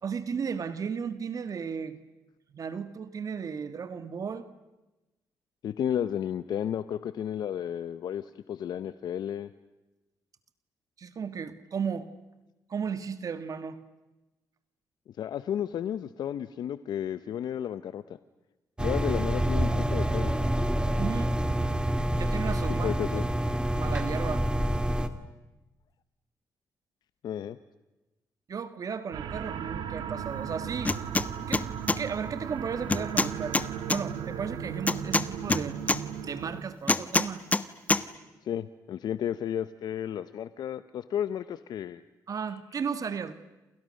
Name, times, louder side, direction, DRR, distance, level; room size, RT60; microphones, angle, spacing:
voice 1, 0.0-2.0 2.5-4.5 11.0-12.1 12.7-13.8 21.0-21.4 22.1-22.9 23.7-24.5 28.5-31.0 31.5-31.7 32.0-33.6 33.9-35.8 36.1-37.4 42.3-43.3, right 6 dB, 55° right, 12 dB, 1.6 m, -34 dB
voice 2, 5.6-9.5 15.2-18.0 18.8-20.3 22.8-23.2 27.2-27.6 38.4-42.0, left 9 dB, 70° left, 13 dB, 0.8 m, -32 dB
sound 1, 18.8-25.1, equal, 10° right, 2.2 m, -27 dB
sound 2, 29.1-36.6, right 8 dB, 80° right, 2.4 m, -36 dB
sound 3, 30.8-31.3 31.5-32.0 32.9-34.0 34.9-36.0 36.9-37.6 37.9-38.0, left 2 dB, 20° left, 1.2 m, -25 dB
28.5 x 28.5 x 6.5 m, 1.1 s
cardioid pair, 70°, 7 cm